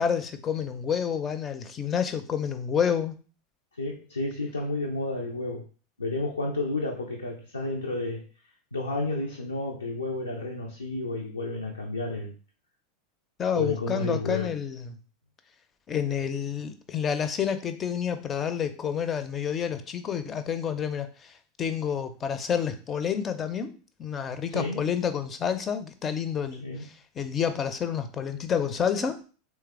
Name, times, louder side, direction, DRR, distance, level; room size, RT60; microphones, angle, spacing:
voice 1, 0.0-3.1 13.4-15.0 15.9-23.7 24.0-29.2, left 7 dB, 25° left, 10 dB, 0.5 m, -29 dB
voice 2, 3.8-5.6 6.0-8.2 8.7-12.3 13.5-14.5 24.5-24.9 26.6-26.9, left 2 dB, 80° left, -1 dB, 0.5 m, -31 dB
3.4 x 3.1 x 3.4 m, 0.37 s
figure-of-eight pair, 85°, 0 cm